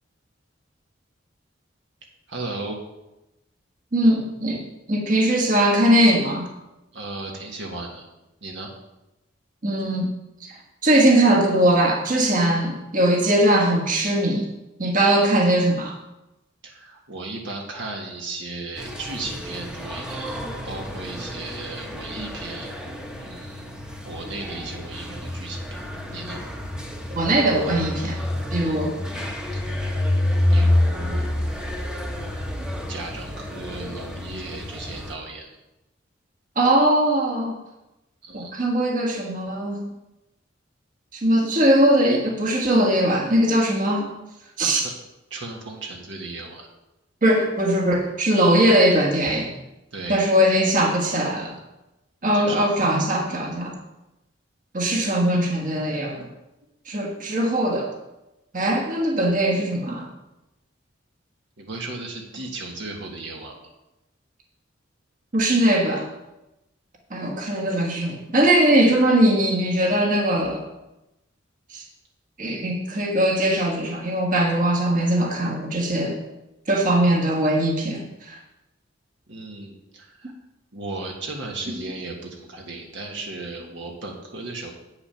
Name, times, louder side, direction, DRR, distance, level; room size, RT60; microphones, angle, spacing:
voice 1, 2.3-2.8 6.9-8.0 8.4-8.7 16.6-23.7 24.0-25.8 26.1-26.4 28.6-28.8 29.5-29.7 30.5-31.4 32.9-35.5 38.2-38.5 44.7-44.9 45.3-46.7 49.9-50.2 52.3-52.6 61.6-63.7 79.3-80.3 80.7-84.7, right 2 dB, 70° right, 0 dB, 1.5 m, -35 dB
voice 2, 3.9-6.5 9.6-10.1 10.4-10.5 10.8-14.5 14.8-15.9 27.1-28.2 28.5-29.0 36.5-37.6 38.3-39.8 41.1-44.1 44.6-44.8 47.2-49.5 50.1-51.6 52.2-53.8 54.7-56.2 56.9-57.9 58.5-60.1 65.3-66.1 67.1-70.6 71.7-71.8 72.4-76.2 76.7-78.0 78.3-78.4, right 1 dB, 45° right, 0 dB, 1.5 m, -20 dB
sound 1, 18.8-35.1, left 1 dB, 5° right, 0.9 m, -28 dB
8.7 x 6.7 x 5.7 m, 0.95 s
head